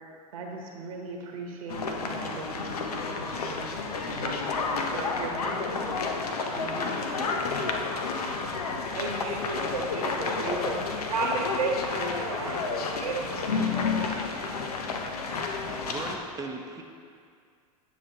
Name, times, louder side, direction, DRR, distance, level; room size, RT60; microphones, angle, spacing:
voice 1, 0.3-3.7 4.0-6.0 6.5-7.2, right 3 dB, 65° right, 1 dB, 1.1 m, -39 dB
sound 1, 1.7-16.2, left 4 dB, 75° left, 0.8 m, -31 dB
voice 2, 8.9-10.8 11.1-14.2, right 3 dB, 85° right, -1 dB, 1.3 m, -33 dB
voice 3, 15.6-16.8, right 3 dB, 15° right, 3 dB, 0.7 m, -38 dB
9.6 x 6.8 x 2.9 m, 2.2 s
hypercardioid pair, 90°, 19 cm